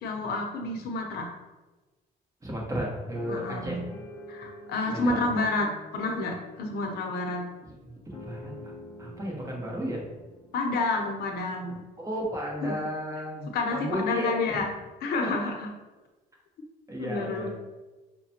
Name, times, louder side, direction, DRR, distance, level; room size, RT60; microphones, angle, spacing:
voice 1, 0.0-1.3 3.3-3.8 4.3-7.5 10.5-11.8 12.6-12.8 13.5-14.7 15.0-15.7 17.0-17.5, left 3 dB, 70° left, 2 dB, 0.7 m, -29 dB
voice 2, 2.4-3.9 4.9-5.3 7.8-8.5 9.0-10.0 12.0-14.6 15.2-15.5 16.9-17.5, equal, 20° right, -3 dB, 1.1 m, -33 dB
sound 1, 3.1-11.2 11.8-11.9 12.2-12.5, left 2 dB, 20° left, 0.4 m, -47 dB
5.7 x 2.2 x 2.8 m, 1.2 s
cardioid pair, 110°, 17 cm